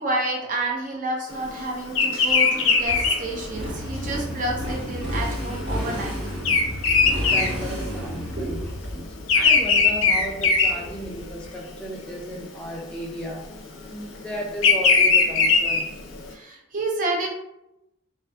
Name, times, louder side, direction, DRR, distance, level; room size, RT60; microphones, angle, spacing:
voice 1, 0.0-6.2 7.8-8.0 8.3-8.6 16.3-17.3, right 2 dB, 40° right, -1 dB, 0.6 m, -29 dB
Bird vocalization bird call bird song, 1.9-8.3 8.6-11.5 12.0-12.3 13.3-16.3, left 4 dB, 85° left, 0.4 m, -20 dB
Motorcycle, 2.8-11.5, equal, 80° right, 1.2 m, -32 dB
voice 2, 7.2-9.1 9.3-13.5 13.9-15.9, equal, 5° left, -2 dB, 0.4 m, -34 dB
2.6 x 2.4 x 2.3 m, 0.87 s
head